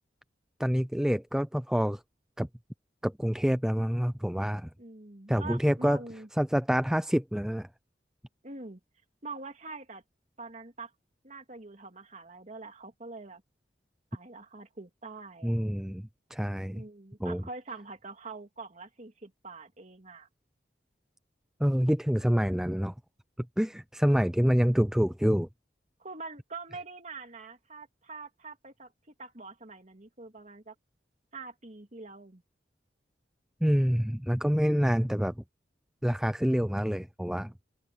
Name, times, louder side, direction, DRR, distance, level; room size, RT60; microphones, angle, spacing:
voice 1, 0.6-2.0 2.4-2.5 3.0-4.7 5.3-6.0 6.4-7.7 15.4-16.8 17.2-17.4 21.6-22.9 23.6-25.5 33.6-35.3 36.0-37.5, equal, 5° right, 0.5 m, -27 dB
voice 2, 4.8-6.3 8.4-8.8 9.2-10.0 10.4-10.9 11.2-13.4 14.1-15.7 16.7-20.3 26.0-28.9 29.2-30.7 31.3-32.4, right 3 dB, 40° right, 2.8 m, -44 dB
open air
head